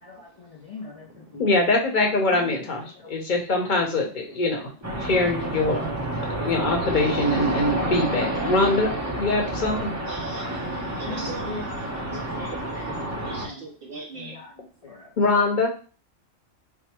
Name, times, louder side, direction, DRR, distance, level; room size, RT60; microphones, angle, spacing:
voice 1, 0.0-1.1 1.3-1.5 2.4-2.5 3.0-3.1 5.2-5.3 5.9-6.0 6.2-6.5 11.1-11.9 12.1-12.8 13.2-13.6 14.2-14.5 14.8-15.1, left 4 dB, 65° left, -1 dB, 0.3 m, -40 dB
voice 2, 1.4-4.6 4.9-5.9 6.4-8.9 9.2-9.9 15.2-15.7, left 2 dB, 45° left, 1 dB, 0.9 m, -23 dB
sound 1, 4.8-13.5, right 1 dB, 20° right, 0.6 m, -29 dB
voice 3, 10.1-10.6 11.0-11.7 12.4-12.5 12.8-12.9 13.2-14.4, right 2 dB, 60° right, 0 dB, 0.6 m, -38 dB
3.5 x 2.0 x 4.3 m, 0.37 s
omnidirectional pair, 1.3 m